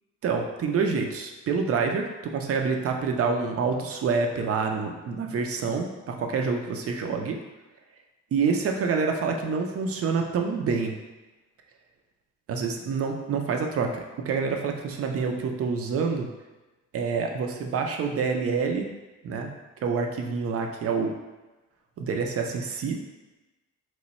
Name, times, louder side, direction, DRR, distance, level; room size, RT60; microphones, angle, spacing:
voice 1, 0.2-7.4 8.3-10.9 12.5-16.3 16.9-18.9 19.2-19.5 19.8-21.2 22.0-23.0, right 5 dB, 50° right, 3 dB, 0.5 m, -27 dB
3.1 x 2.2 x 4.0 m, 1.1 s
cardioid pair, 90°, 30 cm